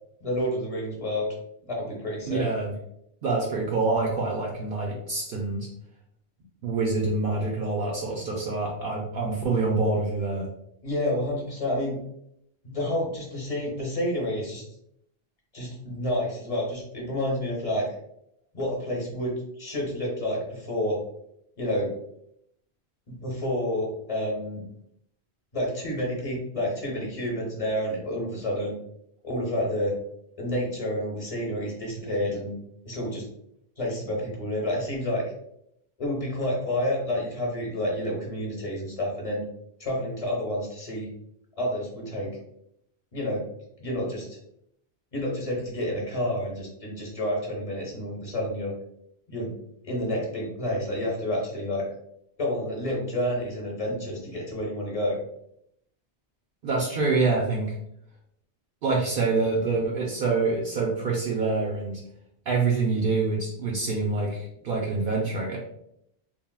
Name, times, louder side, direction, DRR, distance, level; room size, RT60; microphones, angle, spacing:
voice 1, 0.2-1.3 1.7-2.5 10.8-12.0 12.6-14.6 15.5-17.9 18.5-21.0 21.6-21.9 23.1-24.6 25.5-28.8 29.2-29.9 30.4-32.6 32.8-33.2 33.8-35.2 36.0-39.4 39.8-41.1 41.6-42.3 43.1-43.5 43.8-44.4 45.1-48.7 49.3-49.5 49.8-51.9 52.4-55.2, left 1 dB, 35° left, -3 dB, 0.9 m, -29 dB
voice 2, 2.3-2.7 3.2-5.7 6.6-10.5 56.6-57.7 58.8-62.0 62.5-65.6, right 3 dB, 65° right, -2 dB, 0.7 m, -26 dB
3.4 x 2.4 x 2.2 m, 0.75 s
omnidirectional pair, 1.1 m